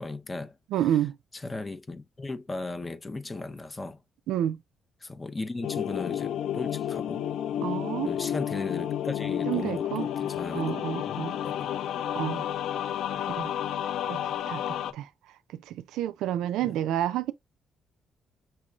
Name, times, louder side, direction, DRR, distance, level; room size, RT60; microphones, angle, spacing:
voice 1, 0.0-0.6 1.3-4.0 5.0-7.2 8.0-10.8 11.1-11.7 13.1-13.3 14.8-15.0 16.6-16.8, left 3 dB, 20° left, 0.7 m, -37 dB
voice 2, 0.7-1.2 4.3-4.6 7.6-8.1 9.5-10.1 10.5-11.4 12.1-12.4 13.3-13.5 14.0-15.1 15.5-17.3, right 11 dB, 90° right, 0.4 m, -30 dB
sound 1, 5.6-14.9, left 10 dB, 75° left, 0.4 m, -31 dB
5.7 x 3.1 x 2.4 m
cardioid pair, 90°, 0 cm